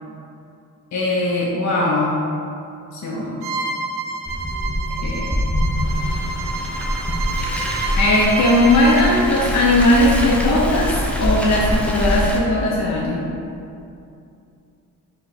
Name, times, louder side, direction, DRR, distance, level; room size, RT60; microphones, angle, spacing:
voice 1, 0.9-2.2 2.9-3.6 5.0-5.6 8.0-13.3, left 1 dB, 45° left, -3 dB, 0.6 m, -18 dB
Bowed string instrument, 3.4-9.2, right 3 dB, 85° right, 0.5 m, -29 dB
Car, 4.3-12.4, equal, 5° left, 0.5 m, -24 dB
4.4 x 2.2 x 4.2 m, 2.6 s
supercardioid pair, 60°, 38 cm